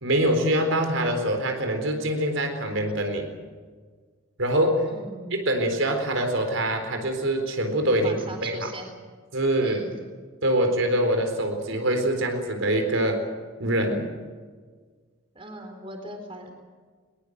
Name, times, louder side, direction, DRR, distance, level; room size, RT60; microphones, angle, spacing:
voice 1, 0.0-3.3 4.4-4.9 5.3-8.7 9.3-9.9 10.4-13.3 13.6-14.1, right 1 dB, 70° right, 5 dB, 4.0 m, -24 dB
voice 2, 4.8-5.4 8.0-8.9 9.6-10.0 15.3-16.5, right 1 dB, 25° right, 3 dB, 4.0 m, -40 dB
21.5 x 21.5 x 8.0 m, 1.5 s
head